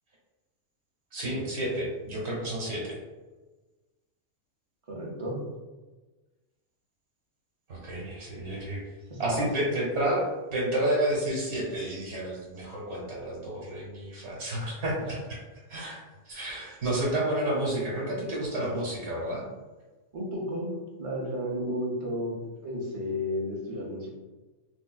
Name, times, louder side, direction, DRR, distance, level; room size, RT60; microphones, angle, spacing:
voice 1, 1.1-3.0 7.7-8.8 9.2-15.4 15.7-16.0 16.2-19.5, right 1 dB, 55° right, -4 dB, 1.3 m, -30 dB
voice 2, 4.9-5.4 9.1-9.5 20.1-22.4 22.6-24.1, equal, 40° right, -3 dB, 0.5 m, -32 dB
3.6 x 2.5 x 2.2 m, 1.2 s
omnidirectional pair, 1.4 m